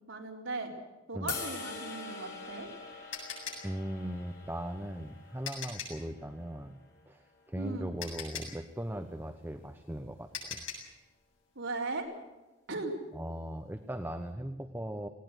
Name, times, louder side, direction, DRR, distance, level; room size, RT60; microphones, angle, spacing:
voice 1, 0.1-0.7 1.1-2.7 7.6-7.9 11.6-12.1 12.7-12.9, right 3 dB, 80° right, 0 dB, 4.2 m, -37 dB
sound 1, 1.3-7.5, left 5 dB, 55° left, 5.3 m, -45 dB
sound 2, 2.2-6.1 7.5-7.6 8.0-11.0, left 6 dB, 70° left, 7.8 m, -42 dB
voice 2, 3.6-6.8 7.1-10.6 13.1-15.1, right 1 dB, 10° right, 7 dB, 0.9 m, -39 dB
20.0 x 18.0 x 8.1 m, 1.1 s
head